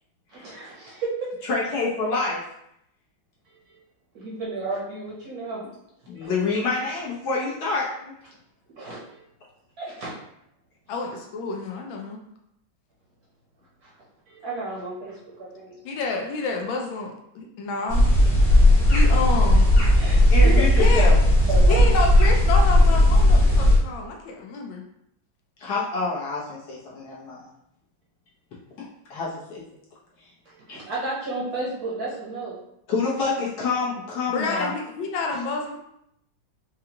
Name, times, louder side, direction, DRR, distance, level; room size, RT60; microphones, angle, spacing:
voice 1, 0.3-1.5 3.5-3.8 4.1-5.7 6.2-6.3 6.7-6.8 8.7-9.2 9.8-10.1 13.8-13.9 14.3-15.7 20.0-20.6 21.5-21.9 30.5-32.6 35.3-35.4, right 2 dB, 60° right, -5 dB, 1.1 m, -33 dB
voice 2, 1.5-2.4 6.1-8.1 20.3-21.2 25.6-27.5 28.8-29.6 30.7-30.8 32.9-34.7, left 3 dB, 60° left, -6 dB, 1.4 m, -27 dB
voice 3, 10.9-12.2 15.8-18.1 18.9-19.7 20.8-21.1 21.7-24.8 34.3-35.8, left 3 dB, 80° left, 1 dB, 1.4 m, -29 dB
sound 1, 17.9-23.8, left 1 dB, 45° left, 0.8 m, -16 dB
4.8 x 2.4 x 2.8 m, 0.78 s
omnidirectional pair, 2.2 m